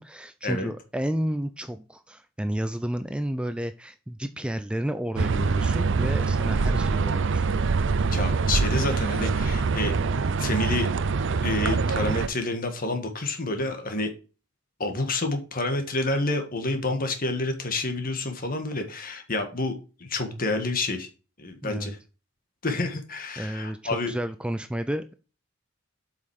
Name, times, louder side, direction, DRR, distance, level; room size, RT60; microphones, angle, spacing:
voice 1, 0.0-7.6 21.6-21.9 23.4-25.0, equal, 5° right, 9 dB, 0.5 m, -31 dB
sound 1, 5.2-12.3, right 4 dB, 65° right, 0.6 m, -24 dB
voice 2, 8.1-10.0 10.4-10.9 11.4-14.1 14.8-21.1 21.4-22.0 22.6-24.1, left 2 dB, 45° left, 6 dB, 1.7 m, -29 dB
8.0 x 5.7 x 4.9 m, 0.34 s
head